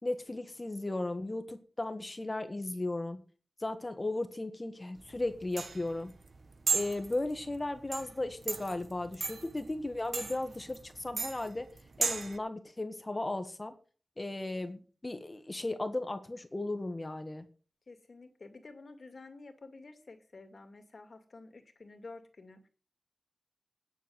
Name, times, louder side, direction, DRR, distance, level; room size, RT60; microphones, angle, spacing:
voice 1, 0.0-3.2 3.6-6.1 6.7-11.7 12.0-13.7 14.2-17.4, left 2 dB, 25° left, 8 dB, 1.5 m, -36 dB
sound 1, 5.0-12.4, right 4 dB, 60° right, 1.1 m, -36 dB
voice 2, 17.9-22.7, left 3 dB, 55° left, 6 dB, 2.3 m, -51 dB
10.0 x 7.2 x 9.3 m, 0.39 s
wide cardioid pair, 100°, 0 cm